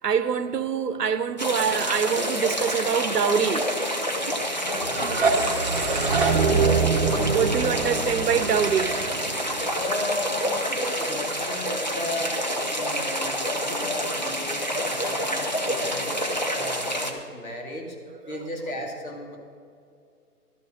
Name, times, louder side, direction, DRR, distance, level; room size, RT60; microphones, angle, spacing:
voice 1, 0.0-3.7 7.2-9.8 15.9-16.0, right 7 dB, 90° right, 1.0 m, -25 dB
sound 1, 1.4-17.1, equal, 30° left, 0.5 m, -28 dB
voice 2, 4.6-5.6 9.8-12.4 12.7-18.0 18.3-19.4, left 1 dB, 60° left, 2.5 m, -35 dB
sound 2, 4.8-9.7, right 4 dB, 35° right, 0.9 m, -24 dB
12.0 x 7.1 x 6.5 m
hypercardioid pair, 170°, 47 cm